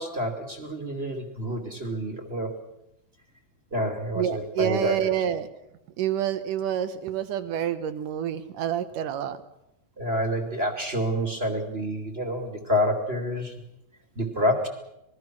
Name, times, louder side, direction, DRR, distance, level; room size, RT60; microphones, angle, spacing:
voice 1, 0.0-2.6 3.7-5.1 10.0-13.5 14.2-14.7, equal, 20° right, 4 dB, 2.1 m, -28 dB
voice 2, 4.2-5.5 6.0-9.4, right 10 dB, 65° right, 11 dB, 2.6 m, -28 dB
26.0 x 20.5 x 6.1 m, 0.86 s
omnidirectional pair, 4.3 m